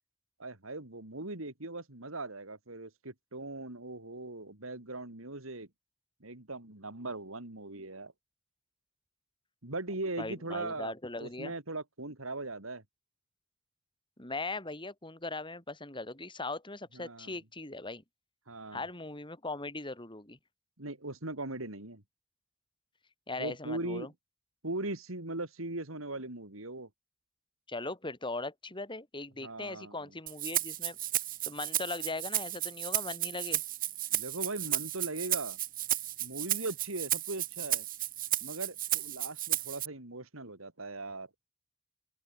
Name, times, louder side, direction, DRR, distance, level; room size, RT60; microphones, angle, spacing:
voice 1, 0.4-5.7 6.2-8.1 9.6-12.8 16.9-17.4 18.5-18.8 20.8-22.0 23.4-24.1 24.6-26.9 29.4-30.1 34.1-35.6 36.2-37.9 38.4-41.3, right 2 dB, 85° right, 3.8 m, -39 dB
voice 2, 10.2-11.5 14.2-18.0 18.7-20.4 23.3-24.1 27.7-31.0 31.4-33.6, left 2 dB, 25° left, 4.9 m, -39 dB
Rattle (instrument), 30.3-39.9, right 14 dB, 45° right, 1.6 m, -33 dB
open air
head